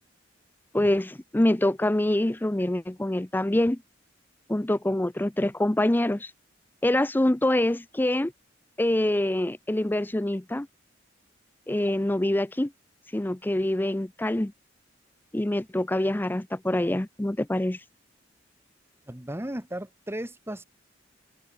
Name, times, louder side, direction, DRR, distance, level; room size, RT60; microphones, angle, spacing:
voice 1, 0.7-3.8 4.5-6.3 6.8-8.3 8.8-10.7 11.7-12.7 13.1-14.5 15.3-17.8, left 1 dB, 10° left, 0.5 m, -25 dB
voice 2, 19.1-20.6, right 1 dB, 15° right, 1.7 m, -35 dB
open air
head